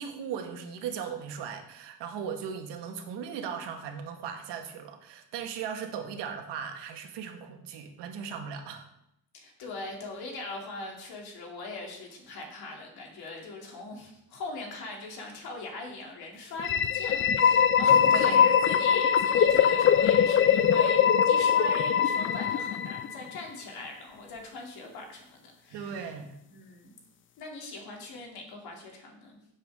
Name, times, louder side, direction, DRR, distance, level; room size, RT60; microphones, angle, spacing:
voice 1, 0.0-8.8 18.1-18.5 25.7-26.4, right 7 dB, 80° right, 5 dB, 1.7 m, -37 dB
voice 2, 9.3-26.1 26.5-27.0 27.4-29.4, left 2 dB, 65° left, 0 dB, 2.9 m, -41 dB
sound 1, 16.6-23.4, left 8 dB, 30° left, 0.4 m, -22 dB
15.5 x 7.6 x 3.7 m, 0.81 s
cardioid pair, 170°, 41 cm